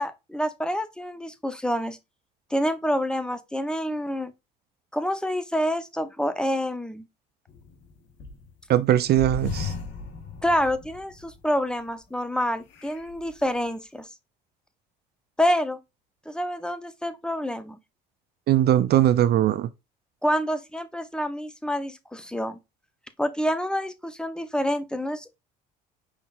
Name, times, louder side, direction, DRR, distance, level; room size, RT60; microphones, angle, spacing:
voice 1, 0.0-2.0 2.5-4.3 4.9-7.0 10.4-14.1 15.4-15.8 16.3-17.8 20.2-22.6 23.2-25.3, equal, 5° left, 0.8 m, -27 dB
sound 1, 7.5-8.6 9.1-11.5 11.9-12.0 12.7-13.4, left 4 dB, 60° left, 1.5 m, -36 dB
voice 2, 8.7-9.7 18.5-19.7, right 12 dB, 50° right, 0.5 m, -20 dB
5.3 x 3.9 x 2.4 m
supercardioid pair, 80°, 21 cm